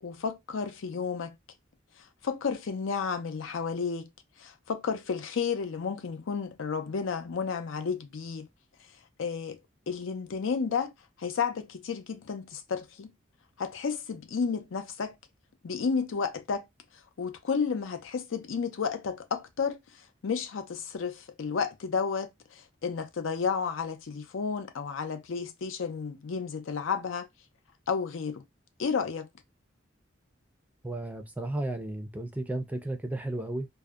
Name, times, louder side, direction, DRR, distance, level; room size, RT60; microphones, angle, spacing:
voice 1, 0.0-1.3 2.2-4.1 4.4-8.5 9.2-10.9 11.2-13.1 13.6-15.2 15.6-16.7 17.2-19.8 20.2-27.3 27.9-28.4 28.8-29.3, left 5 dB, 85° left, 0.5 m, -32 dB
voice 2, 30.8-33.7, right 1 dB, 10° right, 0.4 m, -33 dB
2.6 x 2.0 x 2.3 m
head